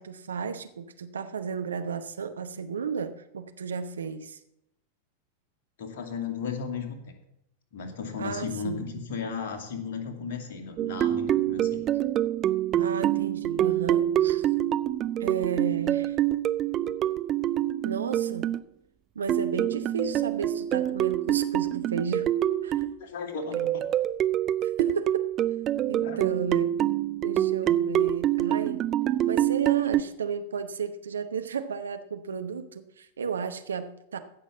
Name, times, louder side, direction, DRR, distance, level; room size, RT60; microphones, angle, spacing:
voice 1, 0.0-4.4 8.2-8.8 12.8-14.5 15.2-16.2 17.8-18.5 19.1-22.3 22.6-22.8 23.5-23.7 24.6-25.3 25.9-26.7 27.2-28.8 29.3-34.2, right 6 dB, 70° right, 9 dB, 0.9 m, -33 dB
voice 2, 5.8-7.0 7.7-11.9 23.0-23.9 26.0-26.3 27.6-27.7, left 5 dB, 50° left, 4 dB, 2.4 m, -35 dB
sound 1, 10.8-18.6 19.3-23.0 23.5-30.0, right 12 dB, 30° right, 0.5 m, -26 dB
15.5 x 6.2 x 7.2 m, 0.80 s
figure-of-eight pair, 90°, 0 cm